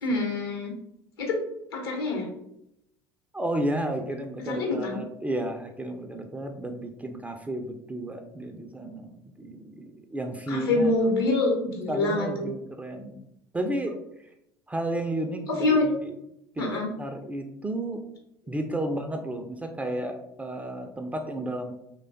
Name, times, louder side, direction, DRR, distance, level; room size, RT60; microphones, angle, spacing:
voice 1, 0.0-0.7 1.2-1.4 1.7-2.3 4.5-5.0 10.5-12.5 15.5-15.9 16.6-16.9, left 2 dB, 75° left, 0 dB, 0.9 m, -25 dB
voice 2, 3.3-10.9 11.9-13.2 13.5-14.3 14.7-15.7 16.0-16.1 16.6-16.7 17.0-18.0 18.5-21.7, right 1 dB, 10° right, 4 dB, 0.3 m, -32 dB
3.1 x 2.2 x 2.6 m, 0.79 s
figure-of-eight pair, 65°, 12 cm